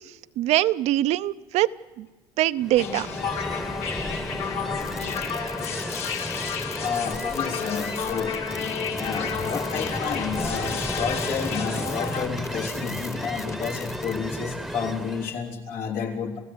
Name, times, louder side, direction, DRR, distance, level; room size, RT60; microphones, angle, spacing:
voice 1, 0.4-1.7 2.0-2.1 2.4-3.1, right 15 dB, 65° right, 14 dB, 0.7 m, -22 dB
Ocean, 2.6-15.4, equal, ahead, 1.0 m, -33 dB
sound 1, 2.8-12.3, left 7 dB, 60° left, 2.5 m, -32 dB
sound 2, 4.8-14.2, left 4 dB, 25° left, 1.2 m, -43 dB
voice 2, 6.8-16.4, left 6 dB, 80° left, 2 dB, 3.6 m, -31 dB
29.5 x 15.5 x 7.9 m, 1.2 s
cardioid pair, 105°, 12 cm